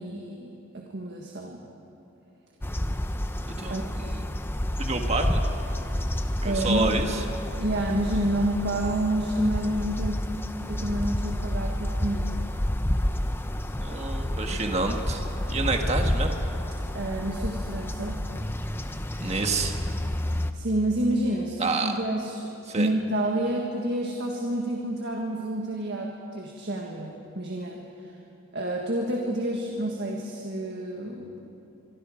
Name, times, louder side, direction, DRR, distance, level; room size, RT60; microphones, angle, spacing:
voice 1, 0.0-1.6 3.7-3.8 6.4-6.9 7.6-10.2 10.7-12.4 14.5-14.6 16.9-18.3 20.5-28.1 28.5-31.4, right 1 dB, 55° right, 0 dB, 1.8 m, -29 dB
sound 1, 2.6-20.5, left 1 dB, 10° left, 0.7 m, -29 dB
voice 2, 3.4-4.2 4.8-5.4 6.4-7.2 13.8-15.2 15.5-16.3 19.2-19.7 21.6-21.9 22.7-22.9, right 3 dB, 30° right, 3 dB, 1.6 m, -28 dB
24.5 x 24.0 x 5.2 m, 3.0 s
head